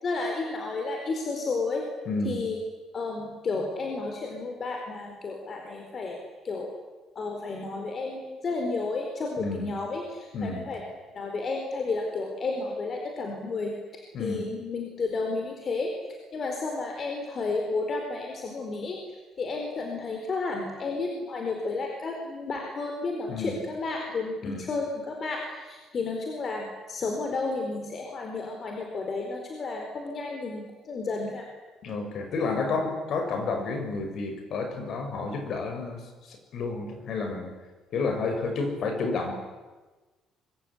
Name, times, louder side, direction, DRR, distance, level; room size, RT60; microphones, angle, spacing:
voice 1, 0.0-1.8 2.2-2.6 2.9-6.2 6.4-6.7 7.1-10.8 11.1-15.9 16.3-19.0 19.4-31.4, left 3 dB, 30° left, 2 dB, 4.4 m, -32 dB
voice 2, 2.1-2.4 9.4-9.7 10.3-10.6 14.1-14.4 23.3-23.5 24.4-24.7 31.8-36.0 36.3-37.5 37.9-39.3, left 3 dB, 45° left, 5 dB, 6.6 m, -30 dB
25.5 x 23.5 x 9.9 m, 1.2 s
cardioid pair, 165°, 0 cm